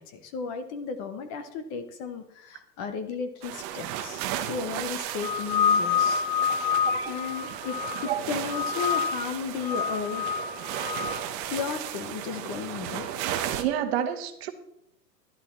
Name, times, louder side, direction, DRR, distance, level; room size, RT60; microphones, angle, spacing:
voice 1, 0.0-6.2 7.1-10.3 11.5-13.1, left 5 dB, 15° left, 9 dB, 0.6 m, -34 dB
sound 1, 3.4-13.6, right 11 dB, 20° right, 0.8 m, -35 dB
sound 2, 5.2-8.1 8.5-9.3 9.6-11.2, left 7 dB, 75° left, 1.7 m, -27 dB
voice 2, 6.4-7.1 8.1-8.2 13.6-14.5, right 10 dB, 40° right, 8 dB, 1.4 m, -30 dB
12.0 x 11.0 x 4.3 m, 0.76 s
hypercardioid pair, 155°, 50 cm